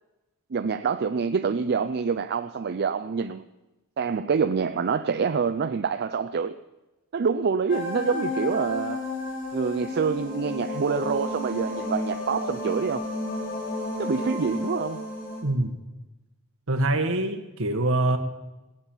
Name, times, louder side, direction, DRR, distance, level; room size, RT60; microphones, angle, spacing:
voice 1, 0.5-3.4 4.0-6.6 7.1-9.1 9.5-13.1 14.0-15.0, right 5 dB, 50° right, 0.4 m, -26 dB
sound 1, 7.7-15.4, left 2 dB, 55° left, 4.5 m, -32 dB
voice 2, 15.4-15.8 16.7-18.2, right 2 dB, 65° right, 1.6 m, -24 dB
18.0 x 9.1 x 7.1 m
head